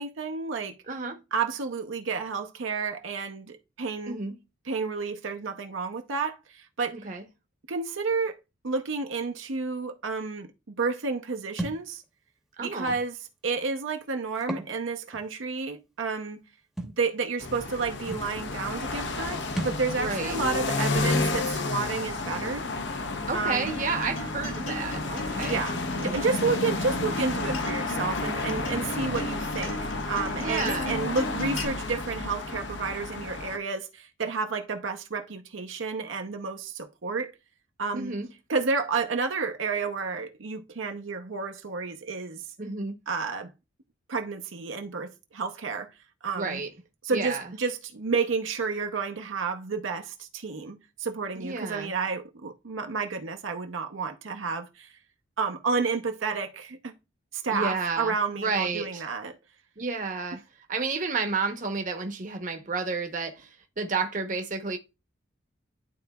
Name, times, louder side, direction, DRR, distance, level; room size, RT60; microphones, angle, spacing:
voice 1, 0.0-0.8 1.3-4.2 4.6-6.9 7.7-8.4 8.6-10.5 10.8-12.0 12.6-13.2 13.4-16.4 16.8-22.7 23.3-23.7 25.4-37.3 37.8-38.1 38.5-42.4 43.1-43.5 44.1-45.9 46.2-46.6 47.0-54.9 55.4-56.9 57.3-59.4, right 4 dB, 75° right, 0.7 m, -31 dB
voice 2, 0.9-1.2 4.1-4.4 6.9-7.2 12.6-12.9 19.9-20.4 23.3-25.6 25.9-26.2 30.3-31.0 37.9-38.3 42.6-43.0 46.3-46.7 47.1-47.4 51.4-51.9 57.5-59.0 59.8-60.4 60.7-63.5 63.8-64.8, right 4 dB, 40° right, 0.8 m, -31 dB
Thump thud, 11.6-11.8 12.9-13.0 14.4-14.7 15.1-15.2 16.8-17.0 17.8-17.9 18.1-18.3 19.5-19.8, right 1 dB, ahead, 0.9 m, -34 dB
sound 1, 17.4-33.6, left 3 dB, 60° left, 0.7 m, -32 dB
Acoustic guitar, 23.7-31.7, left 2 dB, 80° left, 1.2 m, -35 dB
11.0 x 3.8 x 2.3 m
head